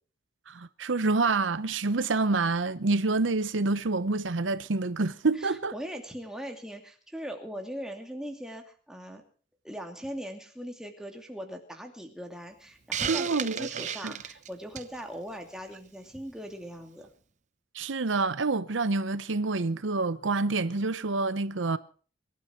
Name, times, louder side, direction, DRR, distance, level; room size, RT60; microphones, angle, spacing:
voice 1, 0.5-5.7 13.1-14.1 17.7-21.8, right 3 dB, 85° right, 0.8 m, -27 dB
voice 2, 5.4-9.2 9.6-17.1, equal, 5° right, 2.6 m, -40 dB
Hiss, 12.9-15.0, right 8 dB, 40° right, 0.8 m, -33 dB
23.5 x 12.0 x 4.5 m
head